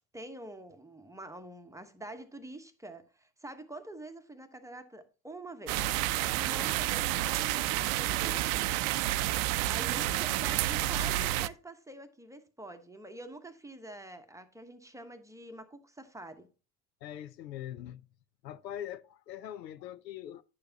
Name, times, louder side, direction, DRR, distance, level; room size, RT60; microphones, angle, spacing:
voice 1, 0.1-5.9 6.2-8.7 9.2-16.5, right 2 dB, 5° right, 0.9 m, -46 dB
sound 1, 5.7-11.5, right 15 dB, 60° right, 0.5 m, -30 dB
voice 2, 17.0-18.1 18.4-20.4, left 11 dB, 85° left, 0.6 m, -42 dB
10.0 x 6.8 x 2.7 m
figure-of-eight pair, 70°, 49 cm